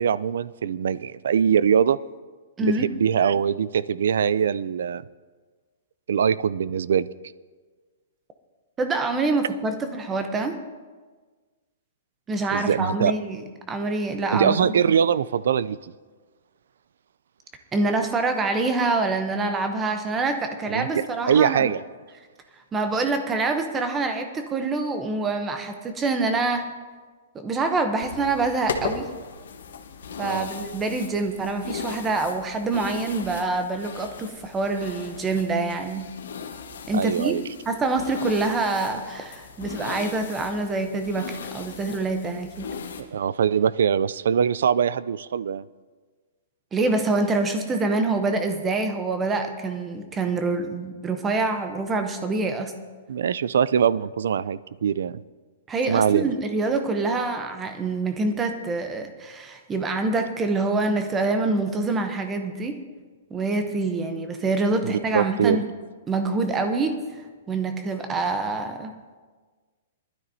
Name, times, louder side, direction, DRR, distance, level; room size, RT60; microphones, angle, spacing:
voice 1, 0.0-2.0 2.6-5.0 6.1-7.1 12.5-13.1 14.3-15.8 20.7-21.8 30.2-30.5 36.9-37.4 43.1-45.6 53.1-55.2 55.9-56.3 64.8-65.6, right 8 dB, 70° right, 18 dB, 0.3 m, -22 dB
voice 2, 2.6-2.9 8.8-10.6 12.3-13.4 13.7-14.6 17.7-21.7 22.7-26.7 27.3-29.1 30.2-36.1 36.9-37.3 37.7-42.7 46.7-52.7 55.7-62.8 63.3-65.7 66.1-67.0 67.5-68.9, right 3 dB, 10° right, 7 dB, 0.7 m, -26 dB
sound 1, 28.0-43.0, left 5 dB, 80° left, 1.4 m, -37 dB
20.0 x 12.5 x 2.7 m, 1.4 s
hypercardioid pair, 175°, 0 cm